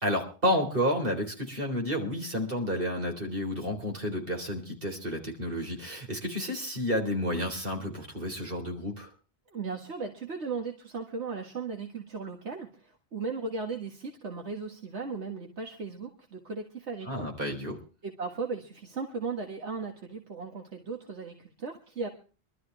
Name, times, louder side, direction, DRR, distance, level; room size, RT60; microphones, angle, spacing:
voice 1, 0.0-9.1 17.1-17.8, equal, 50° right, 2 dB, 4.1 m, -31 dB
voice 2, 9.5-17.3 18.0-22.1, right 4 dB, 75° right, 3 dB, 2.0 m, -37 dB
24.0 x 13.0 x 3.3 m, 0.36 s
omnidirectional pair, 1.2 m